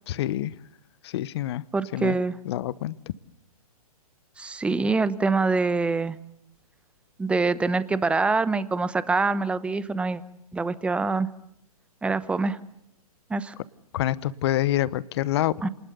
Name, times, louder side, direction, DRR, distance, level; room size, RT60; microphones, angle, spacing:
voice 1, 0.1-0.5 1.0-1.6 1.9-2.1 2.4-2.9 13.9-15.6, left 13 dB, 45° left, 19 dB, 1.1 m, -26 dB
voice 2, 1.7-2.4 4.4-6.2 7.2-10.2 10.5-11.3 12.0-12.6 13.3-13.5 15.6-15.7, right 3 dB, 5° right, 16 dB, 0.9 m, -25 dB
27.0 x 20.0 x 7.0 m, 0.76 s
figure-of-eight pair, 125°, 19 cm